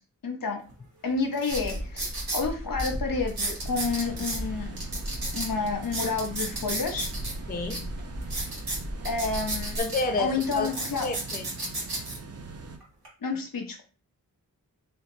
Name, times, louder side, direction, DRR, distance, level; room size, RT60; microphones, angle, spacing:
voice 1, 0.2-0.6 1.0-2.1 2.3-4.8 5.3-7.1 9.0-9.8 10.2-11.1 13.2-13.8, left 4 dB, 65° left, 1.1 m, -29 dB
sound 1, 0.7-0.8 1.3-2.4 2.8-2.9 3.3-4.4 4.8-7.3 7.7-7.8 8.2-10.0 10.4-12.2 12.8-13.1, right 2 dB, 80° right, 1.9 m, -33 dB
sound 2, 1.5-9.8, equal, 25° right, 1.0 m, -37 dB
sound 3, 3.6-12.8, right 4 dB, 40° right, 0.7 m, -42 dB
voice 2, 7.5-7.9 9.8-11.4, left 3 dB, 25° left, 0.5 m, -30 dB
3.2 x 2.9 x 3.9 m
cardioid pair, 50°, 36 cm